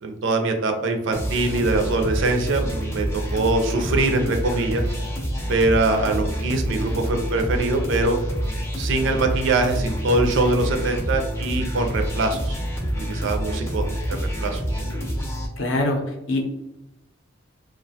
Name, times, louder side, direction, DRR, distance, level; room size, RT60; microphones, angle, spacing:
voice 1, 0.0-4.8 5.5-8.2 8.8-12.6 13.0-14.6, right 2 dB, 60° right, 5 dB, 0.4 m, -23 dB
sound 1, 1.1-15.5, equal, 15° left, 0.4 m, -27 dB
voice 2, 15.6-16.0 16.3-16.5, left 2 dB, 65° left, 2 dB, 0.5 m, -23 dB
2.3 x 2.1 x 2.7 m, 0.91 s
head